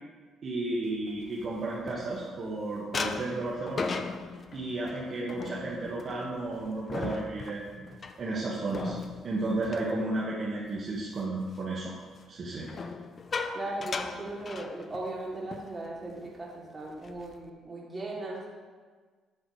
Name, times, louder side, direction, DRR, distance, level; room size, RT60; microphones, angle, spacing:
voice 1, 0.4-3.9 4.5-7.9 8.2-8.9 9.2-11.9 12.3-12.7, right 2 dB, 50° right, -6 dB, 1.8 m, -33 dB
sound 1, 1.1-2.5 2.9-10.8 11.1-11.4 12.6-15.2 15.5-15.7 16.0-16.3 16.8-17.5, left 4 dB, 40° left, 0.6 m, -38 dB
voice 2, 13.5-18.5, right 2 dB, 25° right, -5 dB, 3.0 m, -38 dB
11.5 x 7.9 x 3.3 m, 1.5 s
cardioid pair, 95°, 0 cm